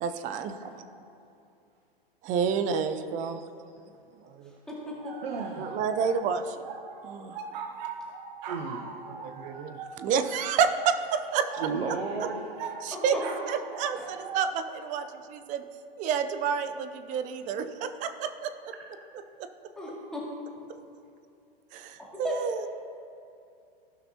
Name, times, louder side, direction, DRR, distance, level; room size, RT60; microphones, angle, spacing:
voice 1, 0.0-0.6 2.2-3.4 4.3-4.5 5.6-6.7 7.0-7.4 9.1-11.7 12.8-13.2 13.5-15.6 16.0-18.5 19.4-19.5 21.7-22.7, right 7 dB, 25° right, 9 dB, 0.5 m, -29 dB
voice 2, 4.7-5.1 12.9-13.2 14.0-14.1 19.8-20.2 22.2-22.4, left 1 dB, ahead, -7 dB, 2.3 m, -36 dB
sound 1, 5.0-14.5, right 5 dB, 50° right, 1.0 m, -41 dB
voice 3, 5.2-5.7 8.5-8.9 11.6-12.4, right 5 dB, 80° right, 2 dB, 1.0 m, -33 dB
16.0 x 5.9 x 2.8 m, 2.5 s
hypercardioid pair, 125°, 30 cm